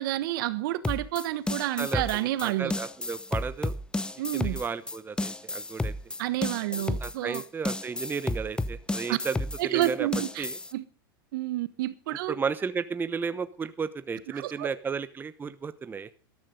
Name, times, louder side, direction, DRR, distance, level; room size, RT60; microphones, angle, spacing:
voice 1, 0.0-2.7 4.2-4.6 6.2-7.4 9.1-9.2 9.6-10.4 10.7-10.8 11.3-12.3 14.3-14.7, right 15 dB, 65° right, 1.4 m, -29 dB
sound 1, 0.8-10.7, left 2 dB, 5° left, 0.8 m, -32 dB
voice 2, 1.8-3.7 4.3-5.9 6.7-10.1 10.4-10.6 12.1-16.1, right 5 dB, 15° right, 1.0 m, -34 dB
13.5 x 13.0 x 5.3 m
hypercardioid pair, 110°, 12 cm